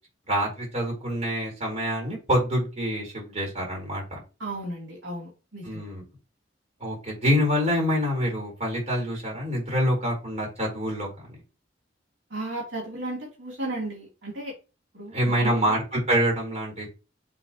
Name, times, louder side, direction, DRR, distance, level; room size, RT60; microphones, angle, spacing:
voice 1, 0.3-4.2 5.6-6.0 6.8-11.3 15.1-16.9, equal, 40° right, -2 dB, 4.4 m, -26 dB
voice 2, 4.4-5.8 12.3-14.5 14.9-15.8, right 2 dB, 80° right, -4 dB, 3.4 m, -34 dB
6.9 x 5.6 x 3.1 m, 0.30 s
head